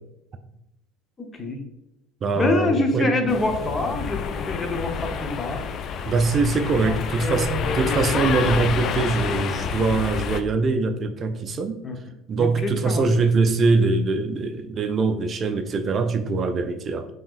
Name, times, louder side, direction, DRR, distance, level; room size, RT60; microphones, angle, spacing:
voice 1, 1.2-1.6 2.3-5.7 6.8-8.5 11.8-12.0 12.4-13.0, left 2 dB, 30° left, 4 dB, 0.7 m, -26 dB
voice 2, 2.2-3.1 6.1-11.8 12.3-17.1, right 4 dB, 40° right, 8 dB, 0.3 m, -23 dB
sound 1, 3.3-10.4, left 6 dB, 45° left, 0.3 m, -28 dB
5.4 x 2.9 x 2.4 m, 0.87 s
hypercardioid pair, 65°, 0 cm